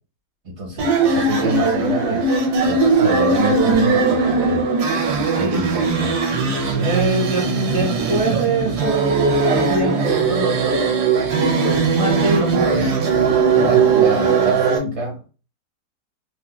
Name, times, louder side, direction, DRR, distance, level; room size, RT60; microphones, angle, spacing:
voice 1, 0.4-4.7 5.3-6.2 6.8-9.1 9.4-11.0 11.4-12.9 13.2-13.3 13.5-15.2, right 2 dB, 45° right, 0 dB, 1.5 m, -25 dB
Damonic song Vocal, 0.8-14.8, right 4 dB, 75° right, 1.2 m, -19 dB
2.8 x 2.7 x 2.2 m, 0.33 s
omnidirectional pair, 1.8 m